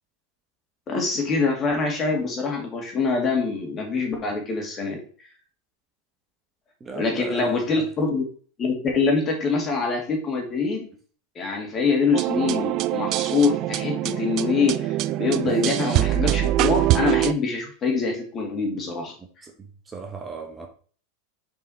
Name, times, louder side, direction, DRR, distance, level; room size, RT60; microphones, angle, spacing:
voice 1, 0.9-5.0 7.0-8.2 8.6-10.9 11.4-14.9 15.2-19.1, left 4 dB, 30° left, 2.3 m, -24 dB
voice 2, 6.8-7.5 19.9-20.7, right 4 dB, 20° right, 1.2 m, -35 dB
sound 1, 12.1-17.3, right 15 dB, 50° right, 0.3 m, -24 dB
5.6 x 4.7 x 4.3 m
hypercardioid pair, 110°, 0 cm